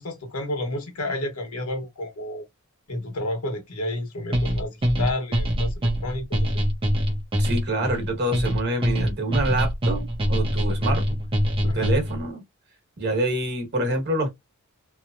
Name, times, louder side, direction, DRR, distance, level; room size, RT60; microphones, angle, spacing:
voice 1, 0.0-2.4 2.9-6.6 11.6-11.9, left 1 dB, 90° left, 1.1 m, -31 dB
sound 1, 4.3-12.2, equal, 25° right, 0.6 m, -24 dB
voice 2, 7.4-11.0 11.6-12.4 13.0-14.3, right 1 dB, 50° right, 1.2 m, -26 dB
2.9 x 2.0 x 2.5 m
head